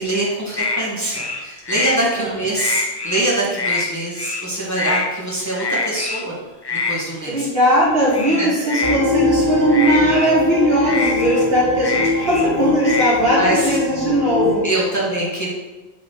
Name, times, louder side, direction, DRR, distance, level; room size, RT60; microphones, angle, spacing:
voice 1, 0.0-6.3 6.9-7.5 8.4-8.5 13.3-13.8 14.6-15.5, right 1 dB, 15° left, -6 dB, 1.6 m, -23 dB
sound 1, 0.6-0.8 1.1-2.0 2.4-3.3 3.5-3.9 4.2-4.5 4.8-5.1 5.6-6.2 6.6-7.0 8.1-9.0 9.7-10.3 10.8-12.5 12.8-13.2, left 3 dB, 30° left, 0.5 m, -24 dB
voice 2, 7.3-14.6, equal, 65° right, -7 dB, 2.5 m, -18 dB
sound 2, 8.8-14.6, left 2 dB, 30° right, 0.4 m, -22 dB
7.5 x 4.2 x 4.6 m, 1.2 s
omnidirectional pair, 1.1 m